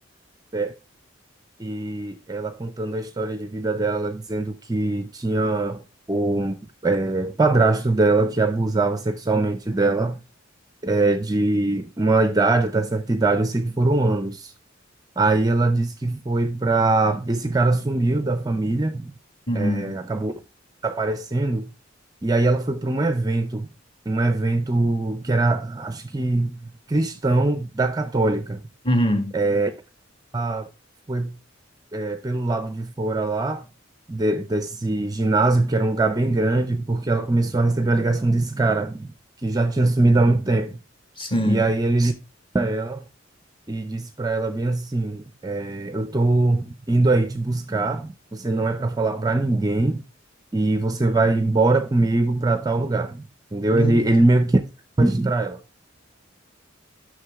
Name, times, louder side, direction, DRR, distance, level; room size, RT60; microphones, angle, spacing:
voice 1, 1.6-5.8 6.1-10.2 10.8-14.5 15.2-19.1 19.5-20.3 20.8-21.7 22.2-23.7 24.1-26.6 26.9-28.6 29.3-29.7 30.3-30.7 31.1-31.4 31.9-33.7 34.1-39.1 39.4-40.7 41.4-42.1 42.5-43.1 43.7-50.0 50.5-54.6 55.0-55.6, right 2 dB, 20° right, 0.6 m, -22 dB
voice 2, 19.5-20.0 28.8-29.4 41.2-41.6 53.7-54.1, equal, 25° left, 2.1 m, -23 dB
9.9 x 6.4 x 3.5 m
head